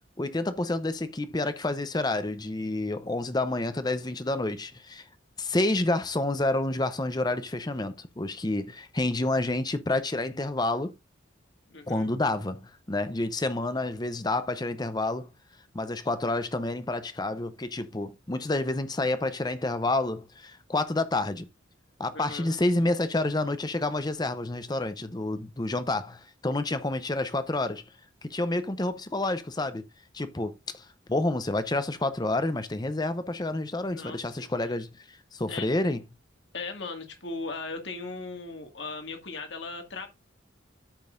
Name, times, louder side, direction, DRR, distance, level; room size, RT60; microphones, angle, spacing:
voice 1, 0.2-5.0 5.4-10.9 11.9-15.3 15.7-21.5 22.0-27.8 28.2-29.8 30.1-36.0, left 2 dB, 20° left, 0.6 m, -29 dB
voice 2, 11.7-12.2 18.3-18.6 22.1-22.6 33.9-34.5 35.5-35.7 36.5-40.1, left 3 dB, 65° left, 1.9 m, -38 dB
13.5 x 5.3 x 2.5 m
head